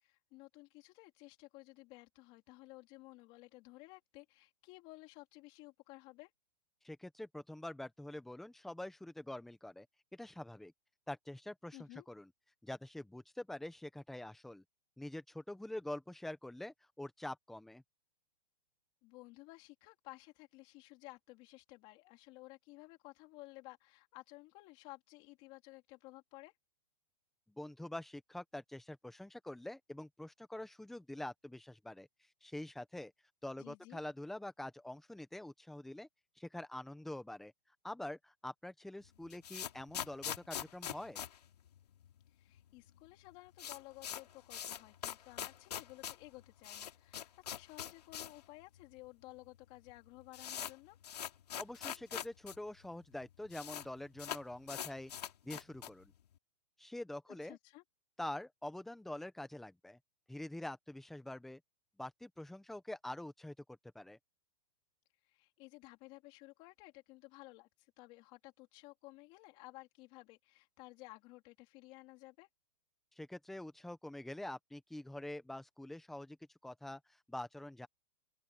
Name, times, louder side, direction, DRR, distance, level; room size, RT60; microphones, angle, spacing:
voice 1, 0.0-6.3 11.7-12.1 19.0-26.5 33.6-34.0 42.3-51.0 57.3-57.8 65.2-72.5, left 21 dB, 25° left, 3.6 m, -55 dB
voice 2, 6.8-9.9 10.1-10.7 11.1-12.3 12.6-14.6 15.0-17.8 27.5-32.1 32.4-33.1 33.4-36.1 36.4-37.5 37.8-41.2 51.6-55.1 55.4-56.1 56.8-57.6 58.2-60.0 60.3-61.6 62.0-64.2 73.2-76.4 76.6-77.9, left 1 dB, ahead, 0.9 m, -46 dB
sound 1, 39.0-42.3 42.5-42.6 42.9-43.0 43.3-48.5 48.8-48.9 49.6-49.7 49.9-52.6 52.8-52.9 53.1-53.9 54.2-56.1, left 10 dB, 85° left, 2.9 m, -43 dB
open air
hypercardioid pair, 170°, 20 cm